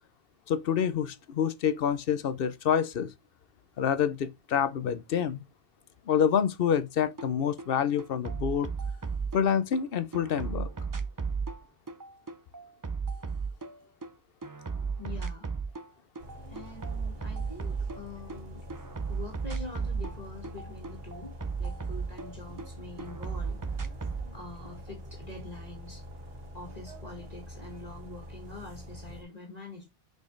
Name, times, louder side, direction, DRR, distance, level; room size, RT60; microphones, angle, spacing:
voice 1, 0.5-3.1 3.8-5.4 6.1-8.7 9.3-10.7, left 8 dB, 70° left, 0.9 m, -27 dB
sound 1, 7.2-7.3 7.6-9.8 10.1-14.1 14.4-15.9 16.2-18.4 18.7-22.7 23.0-24.3, right 5 dB, 25° right, 0.5 m, -34 dB
voice 2, 15.0-15.5 16.5-18.6 19.1-23.8 24.3-26.0 26.5-29.8, left 2 dB, 40° left, 2.0 m, -45 dB
sound 2, 16.2-29.2, equal, 70° right, 1.9 m, -45 dB
6.3 x 5.3 x 3.2 m
omnidirectional pair, 1.0 m